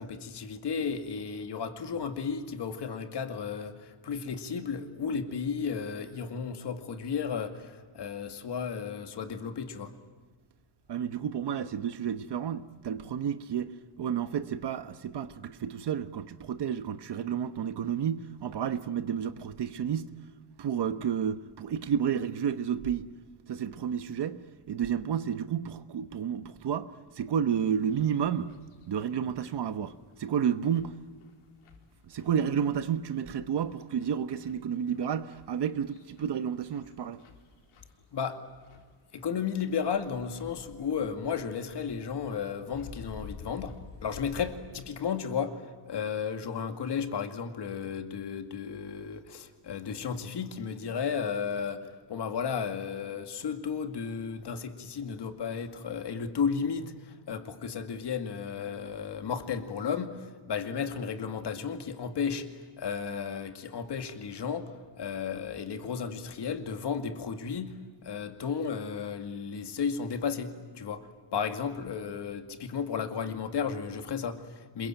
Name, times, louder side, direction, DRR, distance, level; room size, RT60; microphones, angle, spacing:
voice 1, 0.0-9.9 38.1-38.4 39.1-43.7 44.0-60.2 60.5-62.5 62.8-67.8 68.0-74.9, left 6 dB, 55° left, 2.3 m, -34 dB
voice 2, 10.9-20.1 20.6-23.1 23.5-28.5 28.9-31.0 32.0-37.2, right 8 dB, 55° right, 1.2 m, -31 dB
sound 1, 27.7-44.6, left 5 dB, 90° left, 4.5 m, -52 dB
27.0 x 22.5 x 9.0 m
cardioid pair, 155°, 49 cm